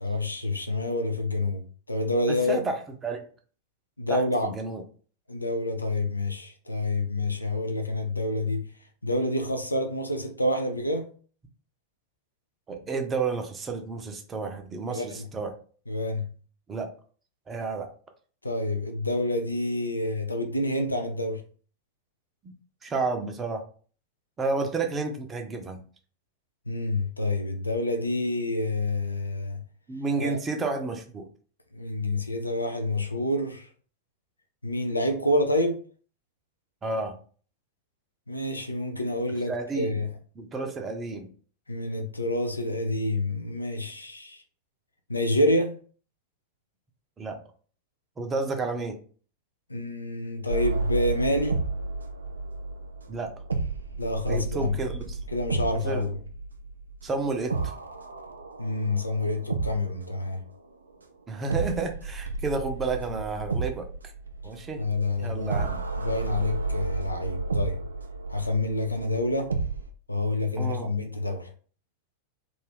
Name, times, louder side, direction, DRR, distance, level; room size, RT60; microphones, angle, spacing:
voice 1, 0.0-2.6 4.0-4.5 5.3-8.7 9.0-11.1 14.9-15.3 15.9-16.3 18.4-21.4 26.7-29.6 30.2-30.4 31.7-33.7 34.6-35.8 38.3-40.1 41.7-44.4 45.1-45.8 49.7-51.6 54.0-54.8 55.3-56.2 58.6-60.4 64.7-65.5 66.0-67.8 68.3-69.5 70.1-71.5, left 1 dB, 85° left, 0.4 m, -28 dB
voice 2, 2.3-3.2 4.1-4.8 12.7-15.5 16.7-16.9 17.5-17.9 22.8-23.6 24.4-25.8 29.9-31.3 36.8-37.2 39.5-40.0 40.4-41.3 47.2-47.4 48.2-49.0 53.1-53.3 54.3-55.2 55.8-56.1 57.0-57.7 61.3-63.9 64.4-64.8 65.2-65.8 70.6-70.9, right 4 dB, 20° right, 0.5 m, -31 dB
sound 1, 50.5-60.3 61.5-69.9, right 3 dB, 75° right, 0.3 m, -32 dB
2.5 x 2.3 x 3.3 m
figure-of-eight pair, 90°, 0 cm